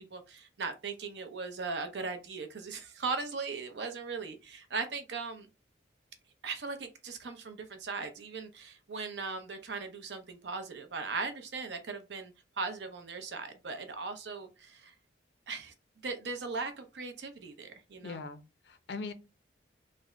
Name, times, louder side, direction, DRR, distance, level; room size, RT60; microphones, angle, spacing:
voice 1, 0.0-5.5 6.4-14.9 15.5-15.7 16.0-18.2, right 4 dB, 70° right, 0.7 m, -38 dB
voice 2, 18.0-19.1, left 4 dB, 65° left, 0.4 m, -41 dB
3.3 x 2.1 x 3.7 m
head